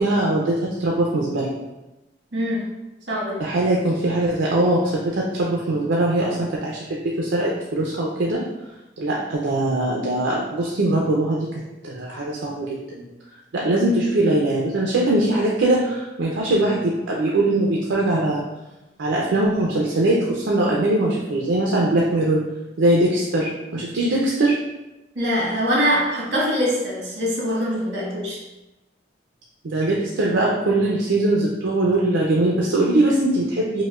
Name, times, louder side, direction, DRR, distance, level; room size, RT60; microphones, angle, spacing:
voice 1, 0.0-1.5 3.4-8.4 9.0-11.5 11.8-13.0 13.5-18.4 19.0-22.4 22.8-24.6 29.6-33.8, right 1 dB, 85° right, -3 dB, 0.5 m, -21 dB
voice 2, 2.3-2.7 3.1-3.4 25.1-28.4, equal, 70° right, -4 dB, 1.2 m, -23 dB
5.0 x 2.1 x 2.3 m, 1.0 s
head